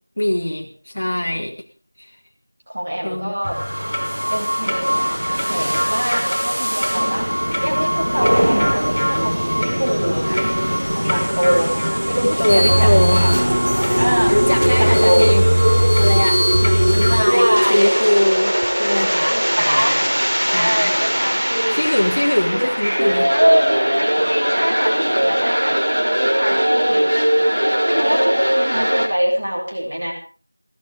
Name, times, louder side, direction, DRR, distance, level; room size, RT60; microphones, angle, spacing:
voice 1, 0.2-1.6 2.0-2.2 3.0-3.4 12.2-13.2 14.3-20.1 20.5-21.0 21.7-23.3, left 1 dB, 30° left, 1 dB, 1.6 m, -22 dB
voice 2, 2.7-3.6 4.3-11.8 12.0-13.3 14.0-15.3 17.1-17.9 19.3-19.9 20.4-21.8 22.5-22.7 23.3-25.8 26.2-27.1 27.8-30.1, equal, 30° right, -2 dB, 7.6 m, -23 dB
sound 1, 3.4-17.2, equal, 5° left, 2.5 m, -30 dB
sound 2, 3.5-18.3, equal, 90° right, 1.8 m, -23 dB
sound 3, 12.5-29.1, equal, 60° right, 4.8 m, -18 dB
17.5 x 15.0 x 5.3 m, 0.42 s
figure-of-eight pair, 180°, 0 cm